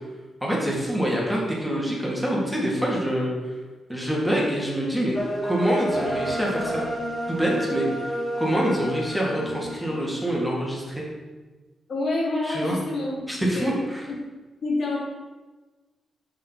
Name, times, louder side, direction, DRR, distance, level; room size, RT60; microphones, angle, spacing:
voice 1, 0.4-3.3 3.9-5.2 5.4-6.9 7.3-11.0 12.4-12.8 13.3-14.1, equal, 5° right, -3 dB, 2.7 m, -26 dB
sound 1, 5.1-10.3, equal, 20° left, 2.1 m, -30 dB
voice 2, 11.9-13.7 14.1-14.2 14.6-15.0, left 2 dB, 60° left, -3 dB, 2.4 m, -27 dB
6.2 x 5.7 x 6.0 m, 1.2 s
cardioid pair, 60°, 0 cm